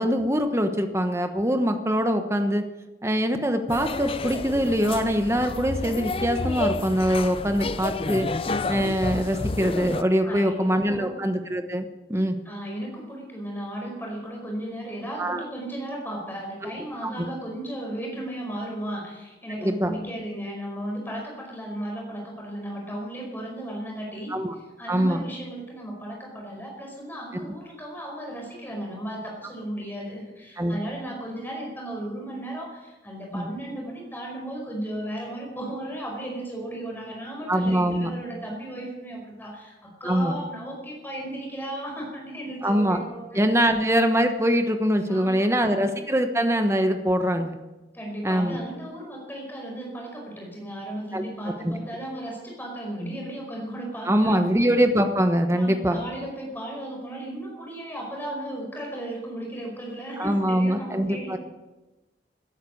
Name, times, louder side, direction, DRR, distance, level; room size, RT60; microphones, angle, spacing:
voice 1, 0.0-2.6 3.0-8.3 8.7-12.4 15.2-15.4 16.6-16.7 17.0-17.1 19.6-19.9 24.3-24.5 24.9-25.2 27.3-27.5 30.6-30.7 33.3-33.5 37.5-38.1 40.0-40.4 42.6-43.0 43.3-47.6 48.2-48.6 51.1-51.2 51.6-51.7 54.1-56.0 60.2-61.4, equal, 15° right, 6 dB, 1.2 m, -23 dB
sound 1, 3.7-10.0, left 3 dB, 30° left, 0.5 m, -30 dB
voice 2, 10.2-10.6 10.8-11.2 12.4-43.4 43.7-43.8 45.1-45.9 47.9-54.4 55.4-61.4, right 1 dB, 10° left, -1 dB, 5.0 m, -35 dB
18.0 x 10.0 x 6.5 m, 1.1 s
head